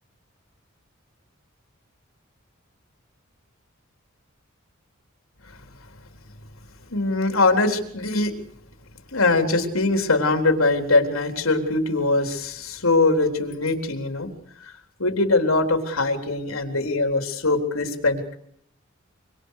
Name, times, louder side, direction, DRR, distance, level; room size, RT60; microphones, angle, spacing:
voice 1, 6.9-8.3 9.1-14.3 14.6-14.7 15.0-18.4, left 2 dB, 85° left, 5 dB, 3.9 m, -22 dB
26.0 x 25.0 x 6.6 m, 0.68 s
head